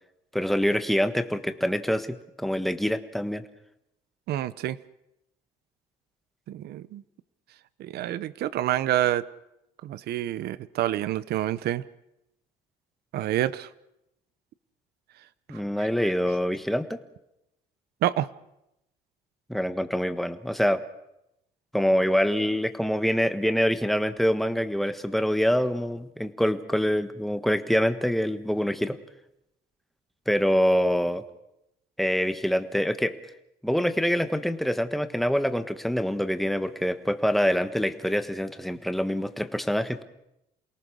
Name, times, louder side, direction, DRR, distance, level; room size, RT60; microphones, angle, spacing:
voice 1, 0.3-3.4 15.5-17.0 19.5-20.8 21.7-29.0 30.3-31.2 32.0-33.1 33.6-40.0, equal, ahead, 8 dB, 1.4 m, -25 dB
voice 2, 4.3-4.8 6.5-7.0 7.8-9.2 9.8-11.8 13.1-13.7 15.5-15.9 18.0-18.3, right 13 dB, 70° right, 16 dB, 0.9 m, -28 dB
28.5 x 18.5 x 6.4 m, 0.86 s
cardioid pair, 110°, 17 cm